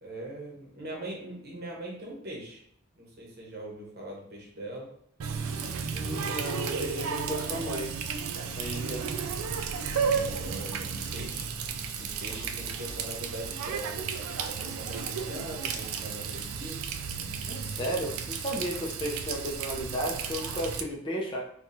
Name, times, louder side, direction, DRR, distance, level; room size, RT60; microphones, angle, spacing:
voice 1, 0.0-2.6 3.0-4.9 9.7-11.7 12.0-16.9, right 1 dB, 50° right, -2 dB, 1.0 m, -42 dB
Water tap faucet, 5.2-20.8, right 6 dB, 85° right, 0.4 m, -33 dB
voice 2, 5.9-7.9 8.5-9.0 17.5-21.4, equal, 25° left, -2 dB, 0.5 m, -34 dB
4.5 x 2.3 x 2.6 m, 0.67 s
head